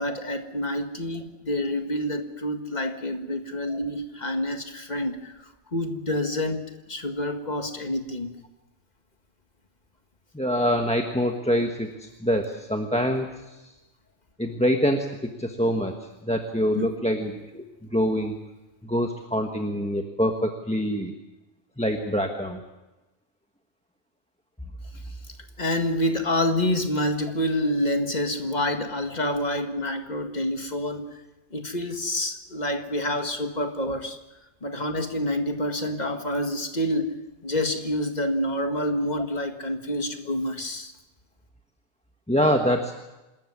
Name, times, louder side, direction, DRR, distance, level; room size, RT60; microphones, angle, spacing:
voice 1, 0.0-6.6 6.9-8.3 16.8-16.9 25.6-31.2 31.5-34.2 34.6-37.1 37.4-40.9, left 1 dB, 40° left, 6 dB, 2.0 m, -27 dB
voice 2, 10.3-13.3 14.4-15.1 15.4-15.9 16.2-17.6 17.9-18.3 18.9-21.1 21.8-22.6 42.3-42.9, equal, 5° left, 4 dB, 1.3 m, -25 dB
26.0 x 13.5 x 9.5 m, 1.1 s
omnidirectional pair, 1.2 m